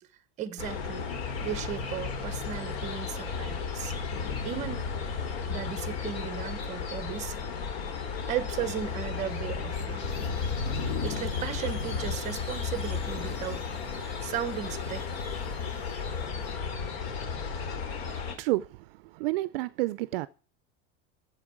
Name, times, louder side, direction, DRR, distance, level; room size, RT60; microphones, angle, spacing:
voice 1, 0.4-1.1 1.4-3.9 4.4-4.9 5.5-7.4 8.3-10.2 11.0-15.1, right 10 dB, 20° right, 0.7 m, -36 dB
sound 1, 0.6-18.3, left 5 dB, 65° left, 2.9 m, -34 dB
sound 2, 0.8-14.2, left 4 dB, 45° left, 2.0 m, -43 dB
Squeak, 8.6-17.3, left 2 dB, 15° left, 2.7 m, -46 dB
voice 2, 17.7-20.3, right 19 dB, 60° right, 0.4 m, -31 dB
8.9 x 7.7 x 6.1 m
supercardioid pair, 175°, 33 cm